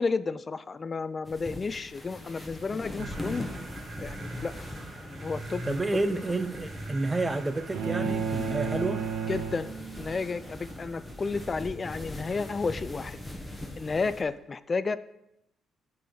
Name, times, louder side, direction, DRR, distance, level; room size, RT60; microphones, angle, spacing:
voice 1, 0.0-3.5 4.0-4.5 5.0-5.6 9.3-9.7 10.0-13.2 13.8-15.0, left 4 dB, 35° left, 16 dB, 0.3 m, -32 dB
sound 1, 1.3-14.2, left 1 dB, 10° left, 1.2 m, -41 dB
sound 2, 3.0-12.4, right 1 dB, 40° right, 1.5 m, -43 dB
voice 2, 5.7-9.0, right 2 dB, 20° right, 11 dB, 0.5 m, -30 dB
sound 3, 7.7-10.3, right 6 dB, 85° right, 0.6 m, -32 dB
8.9 x 4.0 x 5.0 m, 0.84 s
cardioid pair, 90°, 0 cm